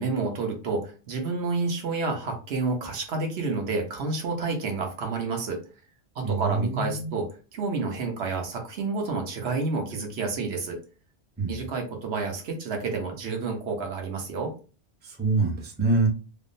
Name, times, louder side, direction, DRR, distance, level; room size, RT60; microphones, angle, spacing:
voice 1, 0.0-5.6 6.2-10.8 11.5-14.5, right 4 dB, 65° right, 3 dB, 0.9 m, -29 dB
voice 2, 6.2-7.2 11.4-11.6 15.0-16.1, right 3 dB, 10° right, 0 dB, 0.5 m, -25 dB
3.4 x 2.0 x 2.5 m, 0.34 s
omnidirectional pair, 1.2 m